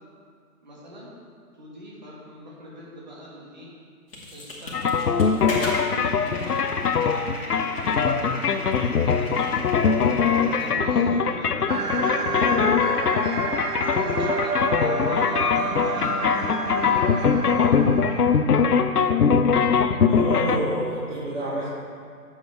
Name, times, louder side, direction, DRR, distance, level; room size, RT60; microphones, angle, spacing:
voice 1, 0.6-1.1 1.6-3.7 4.3-9.6 10.4-12.5 13.9-16.8, equal, 30° right, -5 dB, 1.8 m, -42 dB
sound 1, 4.1-10.7, left 1 dB, 40° left, 1.9 m, -36 dB
sound 2, 4.7-20.6, left 6 dB, 80° left, 0.8 m, -22 dB
sound 3, 11.7-18.8, right 4 dB, 75° right, 0.9 m, -30 dB
voice 2, 20.1-21.7, right 1 dB, 50° right, -8 dB, 2.1 m, -28 dB
8.9 x 7.7 x 4.6 m, 2.3 s
figure-of-eight pair, 170°, 46 cm